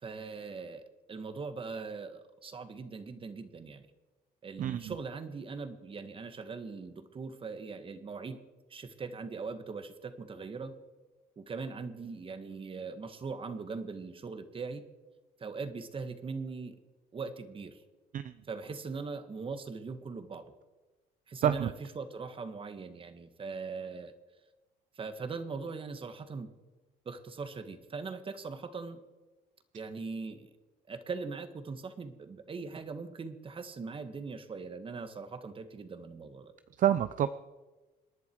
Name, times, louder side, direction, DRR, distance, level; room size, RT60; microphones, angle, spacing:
voice 1, 0.0-3.9 4.4-8.4 8.7-10.7 11.4-14.8 15.4-16.8 17.1-17.8 18.5-20.5 21.3-24.1 25.0-26.5 27.1-29.0 29.7-30.5 30.9-36.5, right 4 dB, 30° right, 9 dB, 1.7 m, -40 dB
voice 2, 4.6-5.0 18.1-18.3 21.4-21.7 36.8-37.3, right 10 dB, 50° right, 12 dB, 0.7 m, -27 dB
27.5 x 11.0 x 4.7 m, 1.2 s
cardioid pair, 110°, 17 cm